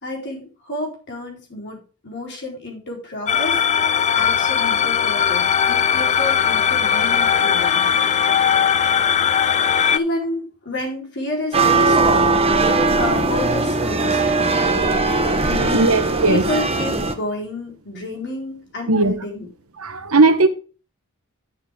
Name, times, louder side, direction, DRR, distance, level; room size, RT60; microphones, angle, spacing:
voice 1, 0.0-7.9 9.9-14.5 15.4-16.0 16.2-19.5, left 2 dB, 50° left, 3.9 m, -30 dB
sound 1, 3.3-10.0, left 8 dB, 30° left, 0.3 m, -18 dB
sound 2, 11.5-17.1, right 3 dB, 25° right, 1.1 m, -19 dB
voice 2, 15.7-16.4 18.9-19.1 19.8-20.5, right 3 dB, 70° right, 1.1 m, -16 dB
10.5 x 7.0 x 3.6 m
head